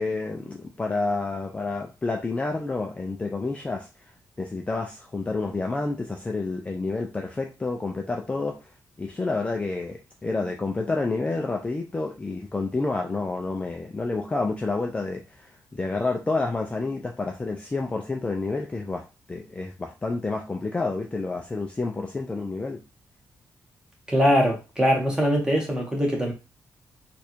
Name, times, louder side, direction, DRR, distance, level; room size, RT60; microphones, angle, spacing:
voice 1, 0.0-4.1 4.4-8.7 9.0-19.0 19.3-22.8, left 3 dB, 20° left, 0.5 m, -29 dB
voice 2, 24.1-26.3, equal, 10° right, 1.3 m, -22 dB
3.2 x 2.6 x 4.4 m
cardioid pair, 115°, 7 cm